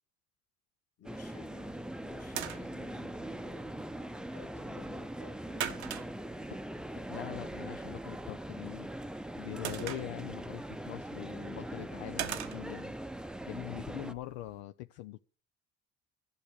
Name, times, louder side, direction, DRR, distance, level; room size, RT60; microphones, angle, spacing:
voice 1, 1.0-3.8 4.2-6.0, left 8 dB, 50° left, 2.1 m, -56 dB
sound 1, 1.0-14.1, right 1 dB, ahead, 0.6 m, -41 dB
sound 2, 1.5-14.6, right 10 dB, 90° right, 1.0 m, -45 dB
voice 2, 6.9-8.9 9.4-13.0 13.5-15.2, left 15 dB, 80° left, 0.6 m, -43 dB
12.0 x 6.7 x 9.5 m
hypercardioid pair, 50°, 33 cm